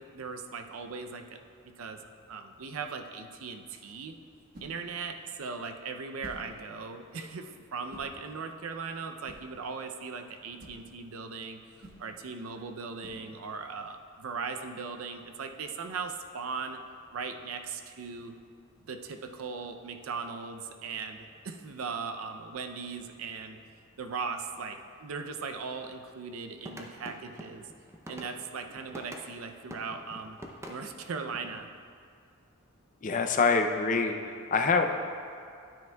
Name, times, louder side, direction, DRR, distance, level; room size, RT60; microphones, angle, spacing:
voice 1, 0.0-1.4 1.8-2.0 2.3-4.1 4.6-16.8 17.1-18.3 18.9-23.6 24.0-27.7 28.1-30.4 30.7-31.7, right 5 dB, 80° right, 7 dB, 0.5 m, -38 dB
sound 1, 4.2-13.8, right 1 dB, 45° right, 1.3 m, -54 dB
sound 2, 26.6-29.3 29.7-31.6, equal, 15° right, 0.5 m, -45 dB
voice 2, 33.0-34.9, left 4 dB, 40° left, 5 dB, 0.5 m, -25 dB
10.0 x 9.1 x 2.3 m, 2.3 s
head